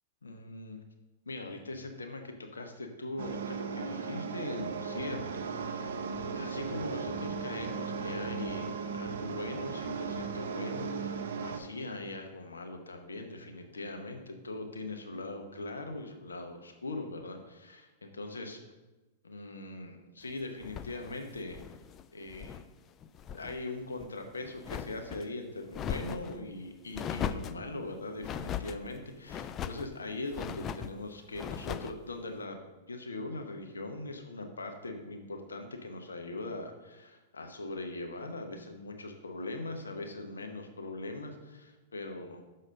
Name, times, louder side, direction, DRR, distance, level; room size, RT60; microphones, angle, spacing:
voice 1, 0.2-0.8 1.3-18.6 19.2-21.6 22.1-22.6 23.3-32.6 32.9-42.4, left 2 dB, 85° left, 5 dB, 0.8 m, -41 dB
sound 1, 3.2-11.6, right 5 dB, 70° right, 0.7 m, -36 dB
sound 2, 20.6-22.7 23.0-23.6 23.9-25.3 25.7-26.4 26.9-27.6 28.2-28.8 29.3-29.9 30.3-30.9 31.3-32.0, left 8 dB, 30° left, 0.3 m, -38 dB
6.4 x 4.1 x 6.3 m, 1.1 s
hypercardioid pair, 110°, 0 cm